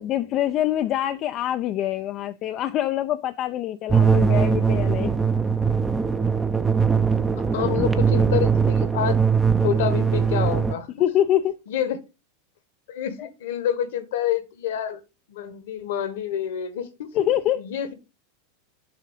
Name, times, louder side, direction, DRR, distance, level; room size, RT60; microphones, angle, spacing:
voice 1, 0.0-5.1 11.0-11.6 13.2-13.3 17.1-17.6, left 12 dB, 40° left, 0.4 m, -25 dB
sound 1, 3.9-10.7, right 6 dB, 10° right, 0.5 m, -21 dB
voice 2, 7.3-9.2 9.6-11.1 11.7-12.0 12.9-15.0 15.3-17.1 17.6-17.9, left 9 dB, 60° left, 1.1 m, -28 dB
6.7 x 2.7 x 5.3 m
figure-of-eight pair, 85°, 0 cm